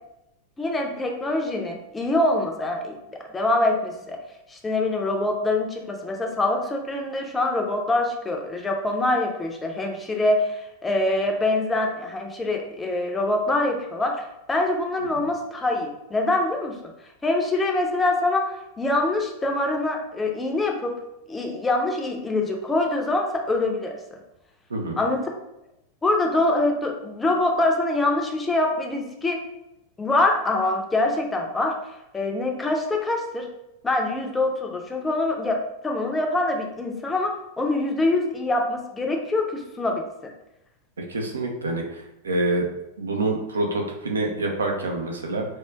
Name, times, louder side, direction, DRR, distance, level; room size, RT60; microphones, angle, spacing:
voice 1, 0.6-3.0 3.3-4.2 4.5-16.7 17.2-21.0 21.3-23.9 25.0-25.2 26.0-29.4 30.0-31.7 32.1-33.5 33.8-40.0, left 2 dB, 15° left, 2 dB, 0.5 m, -24 dB
voice 2, 24.7-25.0 41.1-42.7 43.0-45.5, right 2 dB, 70° right, 2 dB, 0.5 m, -26 dB
4.4 x 2.4 x 2.3 m, 0.86 s
figure-of-eight pair, 90°, 0 cm